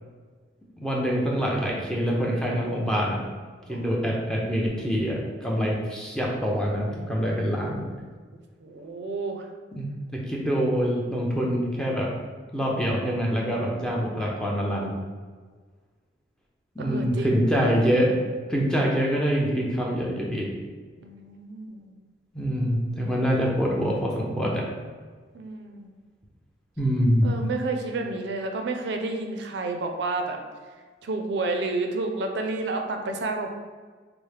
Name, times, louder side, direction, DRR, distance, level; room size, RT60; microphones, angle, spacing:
voice 1, 0.8-3.2 3.7-7.8 9.7-12.1 12.5-14.9 16.8-18.2 18.5-20.5 22.3-24.7 26.8-27.3, equal, 5° left, -3 dB, 0.5 m, -25 dB
voice 2, 8.6-9.5 16.8-17.5 21.0-21.9 25.3-25.9 27.2-30.4 31.0-33.5, right 3 dB, 65° right, 4 dB, 0.4 m, -30 dB
4.2 x 2.0 x 3.2 m, 1.5 s
head